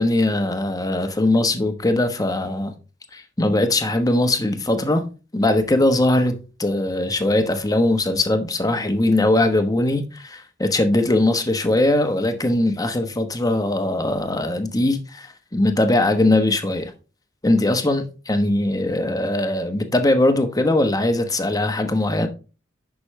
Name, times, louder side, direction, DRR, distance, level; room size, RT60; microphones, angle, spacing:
voice 1, 0.0-2.7 3.1-5.0 5.3-16.9 17.4-22.3, left 1 dB, 20° left, 1.0 m, -20 dB
10.0 x 6.1 x 3.1 m
head